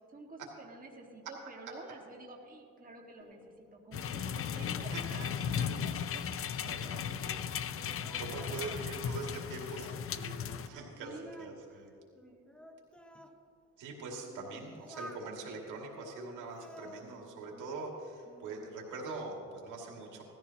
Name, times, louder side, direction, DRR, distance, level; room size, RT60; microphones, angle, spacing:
voice 1, 0.1-6.3 6.8-7.5 7.7-8.8 9.1-9.4 11.0-11.6 12.2-12.5, right 2 dB, 30° right, 0 dB, 1.8 m, -50 dB
Singing, 3.2-7.7 8.0-10.4 10.7-13.4 14.0-15.3 15.9-17.9 18.2-18.8, equal, 5° left, 1.1 m, -54 dB
sound 1, 3.9-10.7, left 8 dB, 45° left, 0.6 m, -36 dB
voice 2, 6.6-7.1 8.2-11.9 13.8-20.2, right 3 dB, 85° right, -1 dB, 2.5 m, -43 dB
18.0 x 14.0 x 2.9 m, 2.5 s
cardioid pair, 90°, 30 cm